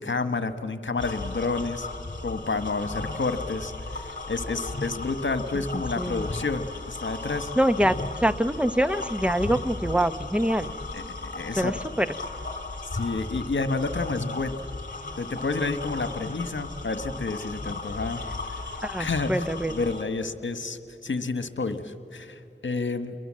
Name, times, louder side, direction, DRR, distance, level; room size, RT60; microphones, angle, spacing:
voice 1, 0.0-1.9 2.2-7.5 9.5-9.6 10.9-11.7 12.8-14.6 15.2-18.2 19.0-23.1, left 3 dB, 65° left, 10 dB, 1.4 m, -30 dB
sound 1, 1.0-20.0, left 3 dB, 40° left, 3.1 m, -36 dB
voice 2, 5.7-6.3 7.6-10.7 11.6-12.1 18.8-19.7, equal, 5° right, 12 dB, 0.9 m, -25 dB
29.0 x 22.5 x 7.6 m, 2.8 s
wide cardioid pair, 50°, 21 cm